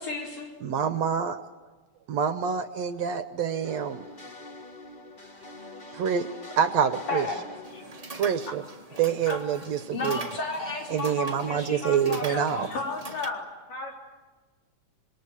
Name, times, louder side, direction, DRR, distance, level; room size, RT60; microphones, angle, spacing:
voice 1, 0.0-0.5 7.1-7.4 9.9-12.7, left 3 dB, 45° left, 1 dB, 5.4 m, -33 dB
voice 2, 0.6-1.4 2.1-4.0 5.9-6.3 6.6-7.3 8.1-8.6 9.0-10.2 10.9-12.7, right 7 dB, 65° right, 11 dB, 1.9 m, -26 dB
sound 1, 3.6-9.4, left 2 dB, 20° left, 1.5 m, -45 dB
sound 2, 7.6-13.3, right 3 dB, 25° right, 0.8 m, -43 dB
voice 3, 12.7-13.4 13.7-14.0, left 4 dB, 85° left, 1 dB, 5.7 m, -33 dB
26.5 x 22.5 x 8.3 m, 1.3 s
omnidirectional pair, 3.6 m